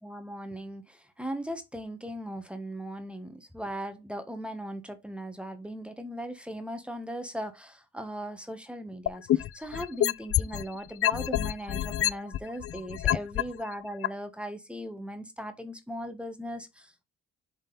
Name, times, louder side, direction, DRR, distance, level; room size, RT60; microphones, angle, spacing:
voice 1, 0.0-17.0, equal, 5° right, 1.2 m, -38 dB
sound 1, 9.1-10.6 11.0-13.4 14.0-14.1, left 12 dB, 50° left, 0.4 m, -26 dB
7.1 x 4.1 x 4.0 m
cardioid pair, 90°, 30 cm